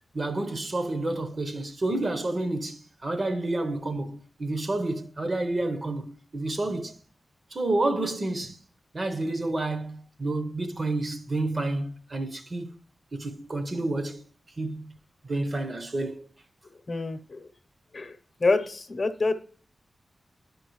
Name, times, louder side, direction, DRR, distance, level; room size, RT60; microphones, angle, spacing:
voice 1, 0.1-7.0 7.5-8.6 8.9-12.7 13.1-14.2 14.6-14.9 15.2-16.3, right 2 dB, 40° right, 0.8 m, -29 dB
voice 2, 16.9-17.5 17.9-19.3, left 3 dB, 45° left, 0.8 m, -27 dB
12.0 x 5.2 x 3.0 m
wide cardioid pair, 110°, 0 cm